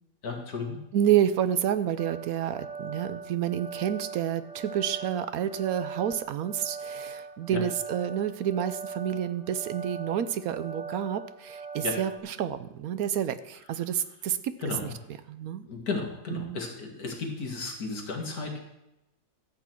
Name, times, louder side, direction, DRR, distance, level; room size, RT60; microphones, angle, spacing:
voice 1, 0.2-0.8 7.5-7.6 11.8-12.0 14.6-14.9 15.6-18.6, left 4 dB, 85° left, 2 dB, 2.4 m, -34 dB
voice 2, 0.9-14.6 15.3-15.7 16.3-16.6, right 10 dB, 80° right, 13 dB, 1.1 m, -29 dB
sound 1, 2.0-12.2, right 5 dB, 25° right, 1.1 m, -40 dB
13.0 x 8.4 x 4.5 m, 0.92 s
omnidirectional pair, 1.6 m